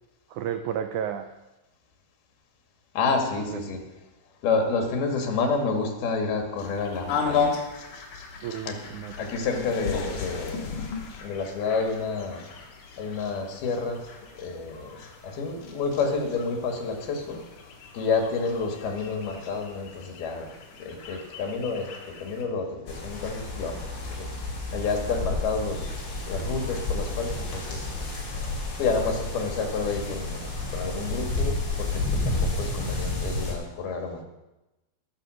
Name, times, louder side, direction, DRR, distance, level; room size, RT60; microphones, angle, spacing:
voice 1, 0.3-1.3 3.5-3.7 8.4-9.3, right 9 dB, 80° right, 8 dB, 1.7 m, -32 dB
voice 2, 3.0-3.8 4.4-7.6 8.7-8.8 9.2-10.7 11.2-12.4 13.0-15.0 15.2-17.4 17.9-20.5 20.8-24.3 24.7-27.9 28.8-34.2, left 4 dB, 85° left, 4 dB, 3.9 m, -29 dB
sound 1, 6.6-22.4, left 5 dB, 60° left, 3.0 m, -36 dB
sound 2, 22.9-33.5, left 2 dB, 35° left, 3.9 m, -31 dB
20.5 x 6.9 x 6.3 m, 1.0 s
omnidirectional pair, 4.3 m